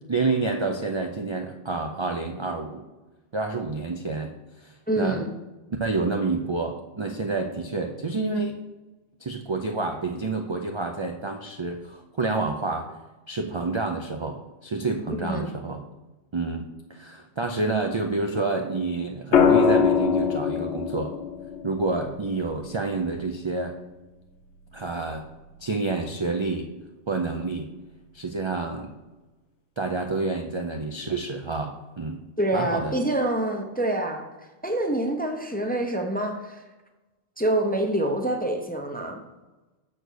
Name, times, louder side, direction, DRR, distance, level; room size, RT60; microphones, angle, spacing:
voice 1, 0.1-2.8 3.3-4.3 4.6-5.2 5.8-8.5 9.2-12.9 13.3-15.8 16.3-21.1 21.6-23.8 24.7-25.2 25.6-26.7 27.1-27.7 28.1-28.9 29.8-32.2 32.5-32.9, right 3 dB, 40° right, 3 dB, 0.4 m, -28 dB
voice 2, 4.9-5.3 15.2-15.5 32.4-34.2 34.6-36.6 37.4-39.2, right 1 dB, 10° left, 3 dB, 0.6 m, -26 dB
sound 1, 19.3-23.5 25.2-25.5, left 7 dB, 65° left, 0.9 m, -23 dB
6.7 x 4.4 x 6.3 m, 1.1 s
omnidirectional pair, 1.2 m